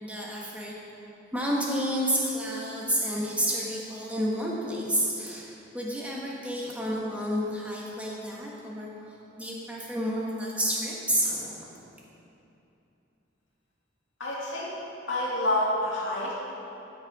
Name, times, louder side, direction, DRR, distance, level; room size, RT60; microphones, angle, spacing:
voice 1, 0.0-0.7 1.3-11.7, equal, 5° right, -4 dB, 1.4 m, -30 dB
voice 2, 14.2-14.7 15.1-16.3, left 1 dB, 75° left, -6 dB, 2.1 m, -28 dB
13.0 x 6.5 x 4.9 m, 2.9 s
head